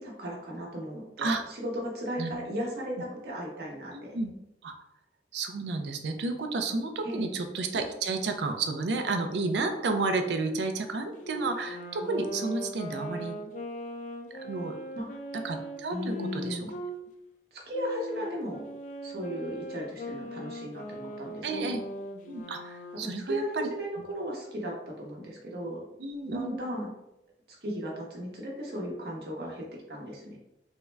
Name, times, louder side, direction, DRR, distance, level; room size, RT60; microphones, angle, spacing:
voice 1, 0.0-4.2 7.0-7.2 14.9-15.1 15.9-16.7 17.5-18.6 19.0-21.7 23.3-25.8 26.2-26.9 27.5-30.4, equal, 60° right, -2 dB, 0.9 m, -36 dB
voice 2, 5.3-13.4 14.3-14.8 15.4-16.6 21.4-21.8 22.3-23.7 26.0-26.6, right 3 dB, 80° right, 6 dB, 0.4 m, -31 dB
Wind instrument woodwind instrument, 11.2-17.0 17.7-23.1, left 1 dB, 45° left, 0.3 m, -40 dB
3.5 x 2.1 x 3.3 m, 0.89 s
head